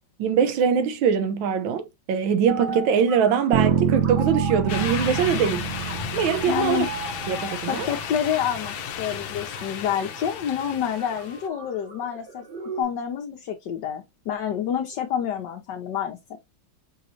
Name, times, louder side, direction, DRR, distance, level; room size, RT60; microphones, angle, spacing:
voice 1, 0.2-5.7 6.1-6.9 7.3-7.9, right 7 dB, 85° right, 1.5 m, -22 dB
sound 1, 2.5-12.8, right 4 dB, 35° right, 0.8 m, -38 dB
sound 2, 3.5-7.5, right 8 dB, 55° right, 1.3 m, -26 dB
sound 3, 4.7-11.5, left 9 dB, 85° left, 1.5 m, -34 dB
voice 2, 6.5-6.9 7.7-12.4 12.8-16.2, left 9 dB, 70° left, 1.5 m, -28 dB
5.7 x 3.1 x 2.6 m
omnidirectional pair, 2.1 m